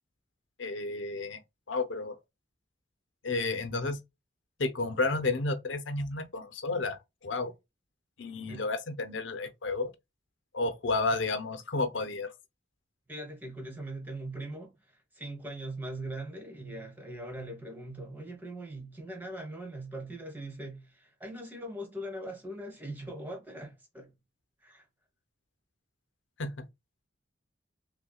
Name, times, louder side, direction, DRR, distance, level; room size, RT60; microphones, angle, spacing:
voice 1, 0.6-1.4 1.7-2.2 3.2-4.0 4.6-7.5 8.2-9.9 10.5-12.3 26.4-26.6, left 3 dB, 80° left, 0.7 m, -31 dB
voice 2, 13.1-24.1 24.6-24.8, right 1 dB, 10° right, 1.2 m, -41 dB
5.7 x 2.2 x 2.3 m
head